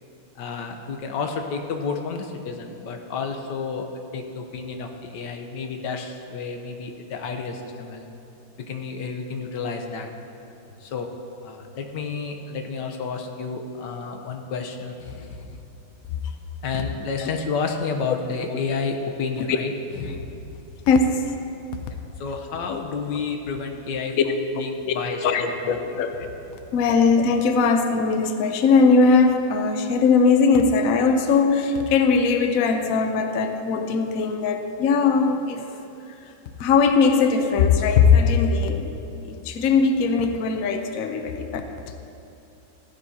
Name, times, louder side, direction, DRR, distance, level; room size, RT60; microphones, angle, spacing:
voice 1, 0.4-3.9 4.1-8.1 8.7-10.1 10.8-11.1 11.4-15.6 16.6-19.7 20.0-20.2 21.9-25.8, left 5 dB, 65° left, 4 dB, 1.3 m, -31 dB
voice 2, 20.9-21.2 22.7-22.8 24.9-25.0 25.2-26.1 26.7-35.7 36.6-38.9 39.2-41.7, left 4 dB, 80° left, 6 dB, 0.7 m, -20 dB
15.0 x 12.0 x 2.8 m, 2.7 s
omnidirectional pair, 2.3 m